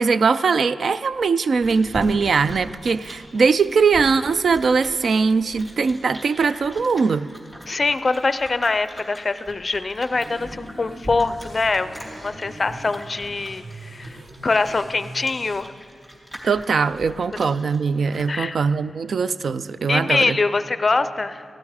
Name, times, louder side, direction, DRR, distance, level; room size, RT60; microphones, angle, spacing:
voice 1, 0.0-7.3 16.4-20.4, right 5 dB, 70° right, 15 dB, 0.3 m, -21 dB
Chewing mastication, 1.1-18.4, equal, 20° right, 3.0 m, -41 dB
voice 2, 7.7-14.2 14.4-15.7 18.3-18.6 19.9-21.4, left 3 dB, 35° left, 12 dB, 0.4 m, -23 dB
sound 1, 10.1-15.6, right 1 dB, 40° right, 1.0 m, -41 dB
16.5 x 12.0 x 4.8 m, 2.4 s
wide cardioid pair, 130°, 0 cm